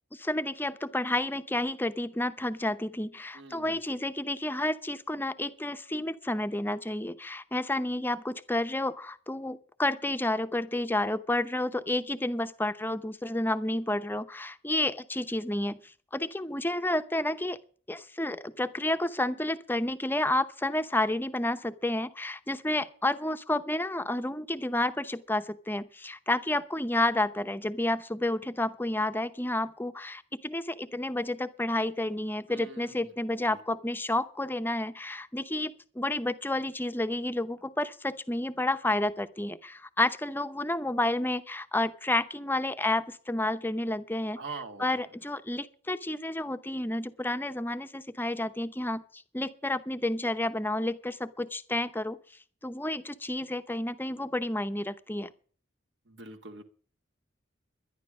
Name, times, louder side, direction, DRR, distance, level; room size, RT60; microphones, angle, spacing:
voice 1, 0.1-15.8 16.1-17.6 17.9-49.0 49.3-52.2 52.6-55.3, left 1 dB, 10° left, 0.8 m, -30 dB
voice 2, 3.3-4.0 32.5-33.1 33.5-33.6 44.3-45.1 56.1-56.6, right 3 dB, 70° right, 1.8 m, -44 dB
11.5 x 11.0 x 6.2 m
head